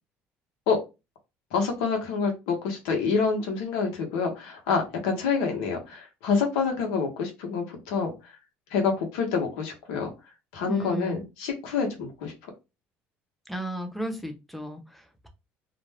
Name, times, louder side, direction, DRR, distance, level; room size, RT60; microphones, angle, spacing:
voice 1, 1.5-8.4 8.7-10.1 10.5-12.3, left 5 dB, 85° left, 3 dB, 1.0 m, -27 dB
voice 2, 10.6-11.2 13.5-15.3, right 1 dB, ahead, 5 dB, 0.7 m, -35 dB
2.5 x 2.1 x 3.3 m, 0.26 s
supercardioid pair, 95°, 5 cm